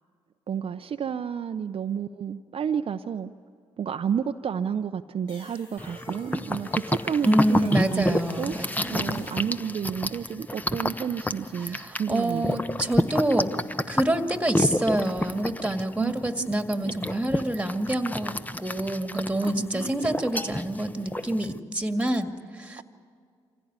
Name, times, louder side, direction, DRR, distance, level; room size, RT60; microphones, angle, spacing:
voice 1, 0.5-3.3 3.8-8.6 8.9-12.6 16.0-16.1 16.4-16.9 19.5-20.1 22.8-22.9, right 7 dB, 50° right, 8 dB, 0.6 m, -31 dB
sound 1, 5.3-9.6, left 3 dB, 85° left, 4.9 m, -48 dB
sound 2, 5.8-21.6, left 1 dB, 15° left, 0.9 m, -30 dB
voice 2, 7.3-9.2 11.6-13.5 13.9-22.8, right 1 dB, 10° right, 6 dB, 2.0 m, -27 dB
25.0 x 16.0 x 9.6 m, 2.2 s
supercardioid pair, 50°, 12 cm